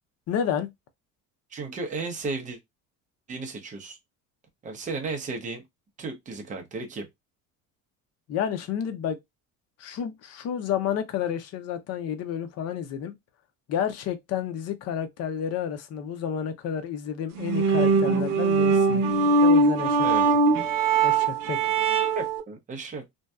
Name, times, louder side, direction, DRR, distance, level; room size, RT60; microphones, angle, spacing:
voice 1, 0.3-0.7 8.3-9.2 9.8-13.1 13.7-19.0 19.4-20.4 21.0-21.8, left 8 dB, 50° left, 0.6 m, -30 dB
voice 2, 1.5-2.6 3.3-4.0 4.6-5.6 6.0-7.1 20.0-20.3 22.1-23.0, right 3 dB, 25° right, 0.6 m, -34 dB
sound 1, 17.4-22.4, right 3 dB, 75° right, 0.7 m, -21 dB
2.6 x 2.2 x 2.2 m
cardioid pair, 135°, 33 cm